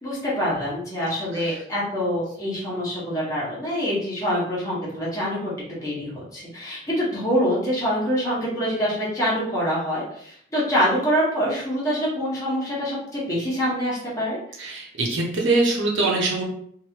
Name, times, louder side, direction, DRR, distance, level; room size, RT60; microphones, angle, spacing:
voice 1, 0.0-14.4, equal, 20° left, -8 dB, 1.3 m, -25 dB
voice 2, 14.6-16.4, right 2 dB, 80° right, -2 dB, 0.9 m, -23 dB
3.1 x 2.7 x 2.9 m, 0.65 s
head